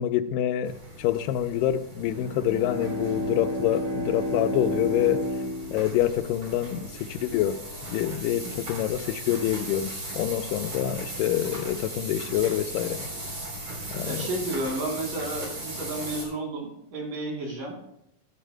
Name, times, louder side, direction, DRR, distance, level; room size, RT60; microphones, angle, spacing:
voice 1, 0.0-5.2 5.7-7.6 7.8-13.0 13.9-14.3, left 12 dB, 85° left, 10 dB, 2.2 m, -26 dB
sound 1, 0.6-16.3, right 1 dB, 45° right, 4.5 m, -38 dB
Bowed string instrument, 2.0-6.8, equal, 5° left, 2.2 m, -32 dB
voice 2, 14.1-17.8, right 2 dB, 80° right, -2 dB, 5.0 m, -32 dB
14.5 x 12.5 x 2.2 m, 0.80 s
omnidirectional pair, 3.9 m